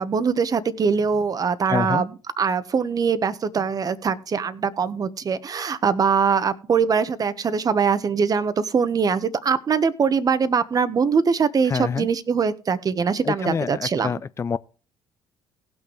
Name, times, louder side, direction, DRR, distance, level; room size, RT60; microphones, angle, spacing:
voice 1, 0.0-14.1, right 6 dB, 40° right, 1.2 m, -22 dB
voice 2, 1.7-2.0 11.7-12.1 13.2-14.6, left 6 dB, 30° left, 0.5 m, -26 dB
18.5 x 6.3 x 3.3 m
hypercardioid pair, 55°, 10 cm